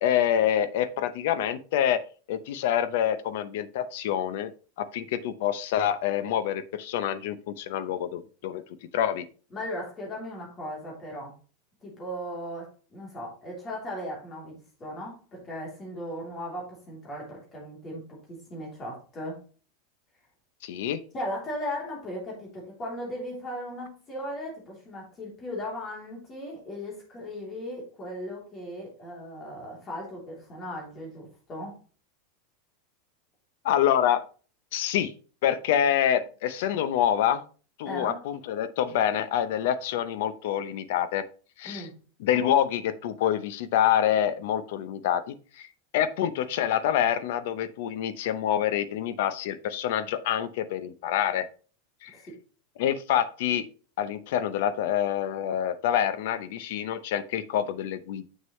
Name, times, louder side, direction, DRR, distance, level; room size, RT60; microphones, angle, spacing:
voice 1, 0.0-2.0 2.3-4.5 4.8-8.6 8.9-9.3 20.6-21.0 33.6-34.2 34.7-35.1 35.4-37.4 37.8-41.2 41.6-41.9 42.2-45.7 45.9-51.5 52.0-52.1 52.8-53.7 54.0-58.2, left 10 dB, 55° left, 14 dB, 0.7 m, -26 dB
voice 2, 9.5-11.3 11.8-14.5 14.8-19.4 21.1-31.8 37.8-38.3 41.6-41.9 52.1-52.3, equal, 15° left, -3 dB, 3.2 m, -37 dB
7.4 x 6.4 x 3.1 m, 0.37 s
supercardioid pair, 180°, 0 cm